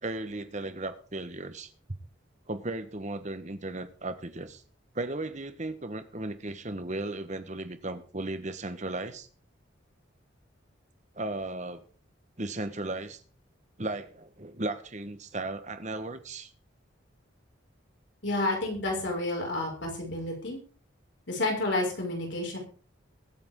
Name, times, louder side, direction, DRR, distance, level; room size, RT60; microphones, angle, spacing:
voice 1, 0.0-1.7 2.5-4.6 4.9-9.3 11.2-11.8 12.4-13.2 13.8-16.5, right 2 dB, 35° right, 10 dB, 1.3 m, -36 dB
voice 2, 18.2-20.6 21.3-22.6, left 2 dB, 65° left, 0 dB, 5.7 m, -30 dB
22.0 x 8.7 x 3.7 m, 0.40 s
head